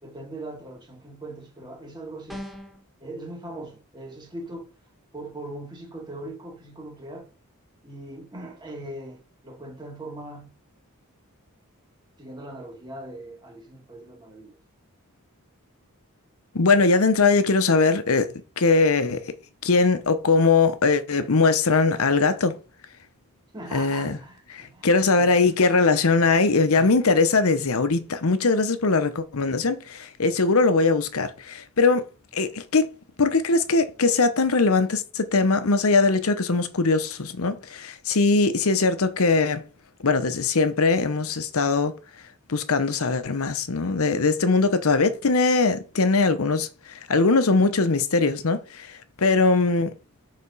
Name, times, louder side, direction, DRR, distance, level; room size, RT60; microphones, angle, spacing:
voice 1, 0.0-2.5 3.0-4.7 5.1-7.3 7.8-10.6 12.2-14.6 23.5-25.5 27.3-27.4, right 1 dB, 20° right, 1.8 m, -40 dB
sound 1, 2.3-2.8, left 1 dB, ahead, 1.1 m, -38 dB
voice 2, 16.5-19.2 19.6-22.6 23.7-24.2 24.5-32.9 33.2-39.6 40.0-41.9 42.5-46.7 47.1-49.9, left 3 dB, 70° left, 0.8 m, -21 dB
6.7 x 4.2 x 4.1 m
head